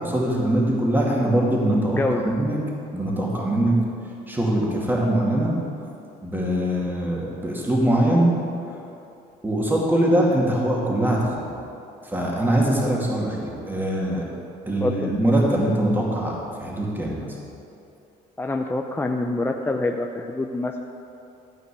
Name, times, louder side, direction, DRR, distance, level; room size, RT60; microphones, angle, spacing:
voice 1, 0.0-2.6 2.9-3.7 4.3-5.5 6.2-8.3 9.4-11.4 12.0-14.2 14.7-17.2, right 1 dB, 10° right, -3 dB, 2.4 m, -22 dB
voice 2, 1.9-2.3 14.8-15.1 18.4-20.8, left 2 dB, 15° left, 3 dB, 0.5 m, -26 dB
13.0 x 5.0 x 8.2 m, 2.7 s
cardioid pair, 110°, 17 cm